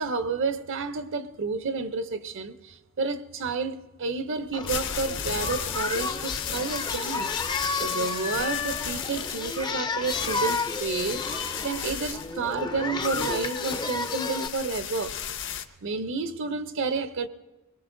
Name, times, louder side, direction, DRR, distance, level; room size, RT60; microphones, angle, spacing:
voice 1, 0.0-7.3 7.8-15.2 15.8-17.3, right 4 dB, 55° right, 0.6 m, -30 dB
sound 1, 4.4-15.7, left 8 dB, 55° left, 0.7 m, -35 dB
Singing, 4.5-14.5, left 4 dB, 20° left, 0.4 m, -32 dB
22.5 x 20.5 x 2.6 m
head